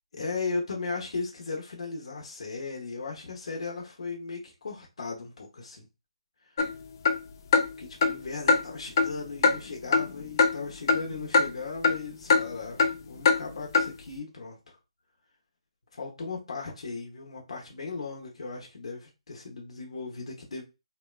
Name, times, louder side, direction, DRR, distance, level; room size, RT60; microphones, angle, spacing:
voice 1, 0.1-5.8 7.8-14.8 15.9-20.6, left 4 dB, 65° left, 0.7 m, -37 dB
sound 1, 6.6-6.7 7.0-7.2 7.5-7.7 8.0-8.1 8.5-8.6 9.0-9.1 9.4-9.6 9.9-10.1 10.4-10.5 10.9-11.0 11.3-11.4 11.8-12.0 12.3-12.4 12.8-12.9 13.2-13.4 13.7-13.9, left 4 dB, 35° left, 0.3 m, -21 dB
2.8 x 2.1 x 2.3 m
hypercardioid pair, 160°, 3 cm